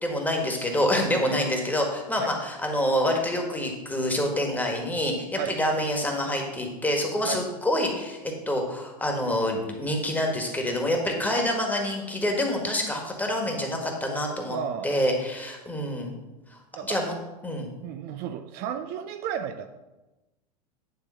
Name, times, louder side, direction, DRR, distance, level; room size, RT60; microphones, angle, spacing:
voice 1, 0.0-14.6 14.8-16.1 16.9-17.1 17.4-17.7, left 1 dB, 10° left, 1 dB, 1.7 m, -27 dB
voice 2, 14.5-14.9 16.7-17.0 17.8-19.7, right 8 dB, 50° right, 8 dB, 0.6 m, -33 dB
10.0 x 3.4 x 5.6 m, 1.1 s
hypercardioid pair, 95°, 21 cm